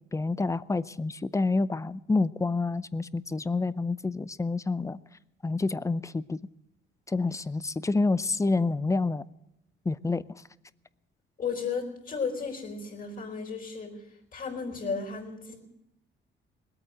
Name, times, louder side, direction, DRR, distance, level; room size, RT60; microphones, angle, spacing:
voice 1, 0.1-5.0 5.4-6.4 7.1-9.2 9.9-10.2, left 3 dB, 15° left, 18 dB, 0.6 m, -28 dB
voice 2, 11.4-14.0 14.3-15.6, left 5 dB, 45° left, 2 dB, 4.3 m, -34 dB
20.0 x 8.8 x 7.8 m, 0.87 s
cardioid pair, 90°, 20 cm